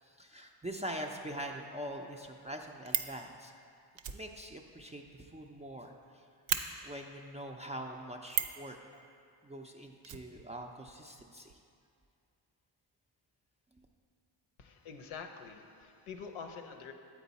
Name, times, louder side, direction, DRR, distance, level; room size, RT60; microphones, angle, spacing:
voice 1, 0.0-3.5 4.1-6.3 6.8-9.1 9.4-11.6, equal, 15° right, 1 dB, 0.4 m, -43 dB
Fire, 2.4-3.2 4.0-5.7 6.0-6.1 6.5-6.6 8.3-8.6 10.0-10.9 11.2-11.3 11.5-11.6, right 9 dB, 65° right, 0.6 m, -35 dB
voice 2, 14.6-16.9, left 5 dB, 70° left, 5 dB, 0.7 m, -46 dB
8.1 x 4.6 x 4.0 m, 2.4 s
cardioid pair, 60°, 49 cm